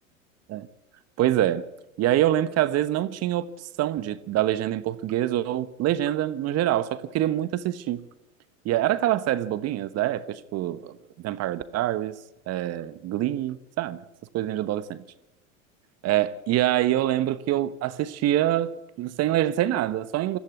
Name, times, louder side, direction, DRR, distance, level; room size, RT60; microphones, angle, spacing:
voice 1, 1.2-1.7 2.0-8.0 8.6-11.0 11.2-12.2 12.5-14.0 14.3-14.8 16.0-20.4, right 13 dB, 40° right, 1.2 m, -25 dB
21.5 x 14.5 x 9.4 m
hypercardioid pair, 95°, 41 cm